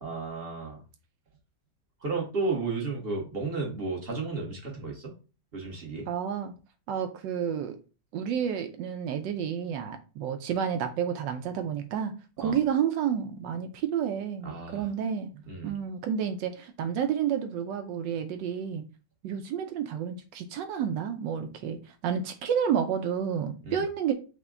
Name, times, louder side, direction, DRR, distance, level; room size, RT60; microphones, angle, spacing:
voice 1, 0.0-0.8 2.0-5.1 5.5-6.1 12.4-12.6 14.4-14.9 15.5-15.8 23.6-23.8, right 3 dB, 40° right, -1 dB, 1.0 m, -33 dB
voice 2, 6.1-6.5 6.9-7.8 8.1-12.1 12.4-15.3 15.6-18.8 19.2-24.1, right 8 dB, 80° right, 7 dB, 1.3 m, -30 dB
5.8 x 2.2 x 3.7 m, 0.33 s
omnidirectional pair, 2.0 m